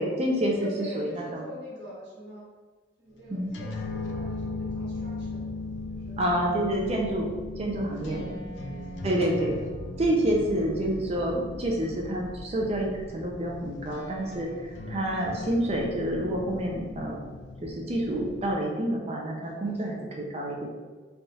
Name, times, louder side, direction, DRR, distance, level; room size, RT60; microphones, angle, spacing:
voice 1, 0.0-0.7 1.0-1.4 3.3-3.5 6.2-8.3 9.0-9.6 10.0-17.2 17.6-20.7, right 1 dB, 30° right, -1 dB, 0.5 m, -28 dB
voice 2, 0.5-2.4 3.0-5.4 5.9-6.2 7.9-9.0 19.5-20.0, left 1 dB, 60° right, -5 dB, 1.2 m, -44 dB
sound 1, 3.4-18.5, left 2 dB, 70° left, 0.4 m, -38 dB
3.4 x 2.3 x 4.0 m, 1.4 s
head